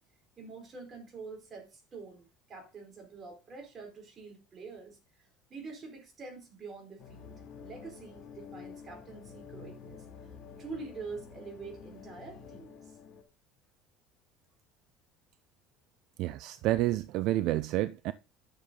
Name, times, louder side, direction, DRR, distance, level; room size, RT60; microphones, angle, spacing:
voice 1, 0.4-5.0 5.5-10.0 10.6-12.8, right 4 dB, 30° right, 4.4 m, -46 dB
sound 1, 7.0-13.2, left 6 dB, 45° left, 2.4 m, -49 dB
voice 2, 16.2-18.1, right 15 dB, 60° right, 0.5 m, -29 dB
10.0 x 6.8 x 3.9 m
cardioid pair, 140°, 0 cm